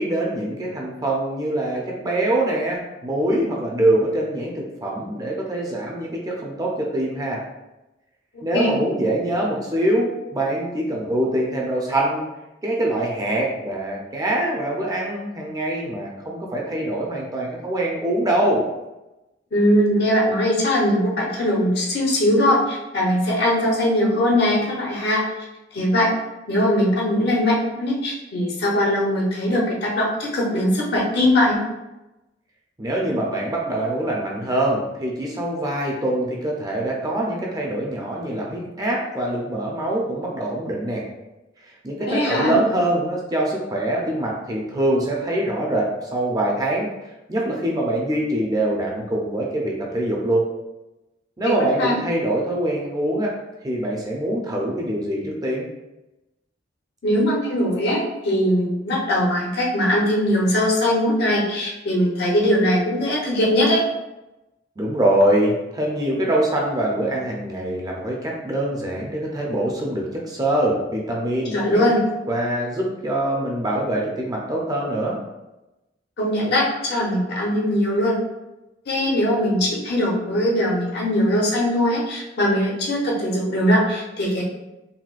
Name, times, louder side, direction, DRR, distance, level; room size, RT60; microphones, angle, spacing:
voice 1, 0.0-7.4 8.4-12.3 12.6-18.6 32.8-41.1 41.8-46.9 47.3-50.5 51.4-53.3 53.6-55.7 64.8-71.9 72.3-75.2, right 1 dB, 20° right, -2 dB, 0.5 m, -24 dB
voice 2, 19.5-25.2 25.7-26.1 26.5-31.6 42.1-42.6 51.4-52.0 57.0-63.8 71.5-72.0 76.2-78.1 78.9-84.4, left 1 dB, 60° left, -2 dB, 0.8 m, -20 dB
4.1 x 2.2 x 2.4 m, 0.98 s
head